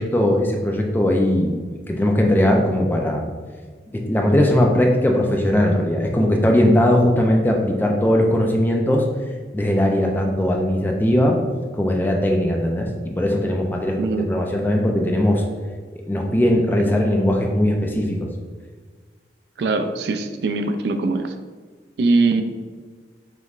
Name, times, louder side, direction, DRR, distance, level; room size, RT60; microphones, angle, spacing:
voice 1, 0.0-1.5 1.9-3.2 3.9-9.0 9.5-11.4 11.7-15.4 16.1-18.3, left 1 dB, 10° left, 1 dB, 0.4 m, -19 dB
voice 2, 14.0-14.3 19.6-21.3 22.0-22.4, right 3 dB, 65° right, 7 dB, 0.3 m, -21 dB
5.2 x 3.0 x 2.4 m, 1.5 s
head